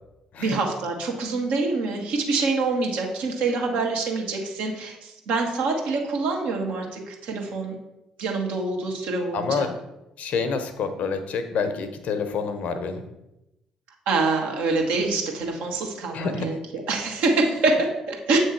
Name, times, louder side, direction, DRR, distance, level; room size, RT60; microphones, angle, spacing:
voice 1, 0.4-7.8 8.2-9.7 14.1-18.4, right 3 dB, 65° right, 0 dB, 1.3 m, -25 dB
voice 2, 9.3-9.7 10.2-13.0 16.1-16.5, left 5 dB, 55° left, 8 dB, 0.8 m, -27 dB
7.6 x 3.2 x 4.4 m, 0.90 s
hypercardioid pair, 45°, 3 cm